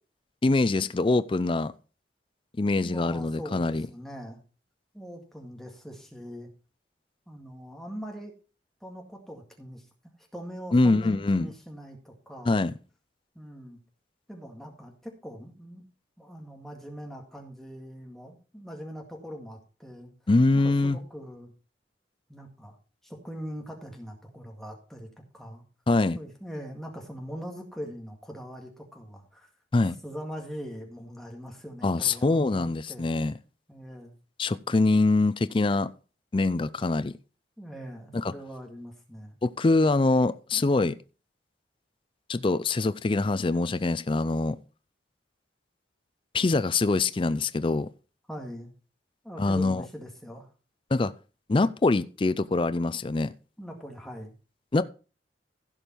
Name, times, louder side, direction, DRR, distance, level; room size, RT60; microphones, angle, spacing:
voice 1, 0.4-1.7 2.6-3.9 10.7-11.5 12.5-12.7 20.3-21.0 25.9-26.2 29.7-30.0 31.8-33.3 34.4-35.9 36.3-37.1 38.1-38.3 39.4-41.0 42.3-44.6 46.3-47.9 49.4-49.8 50.9-51.1 51.5-53.3 54.7-54.8, left 3 dB, 30° left, 0.4 m, -24 dB
voice 2, 2.7-4.4 4.9-6.5 7.3-8.3 8.8-9.9 10.3-12.6 13.4-13.8 14.3-15.8 16.2-20.1 20.6-21.5 22.3-22.8 23.0-25.1 25.3-25.6 26.1-29.5 30.0-33.2 33.7-34.1 37.6-39.4 48.3-48.7 49.2-50.5 53.6-54.3, equal, ahead, 1.9 m, -42 dB
15.5 x 5.3 x 4.5 m
head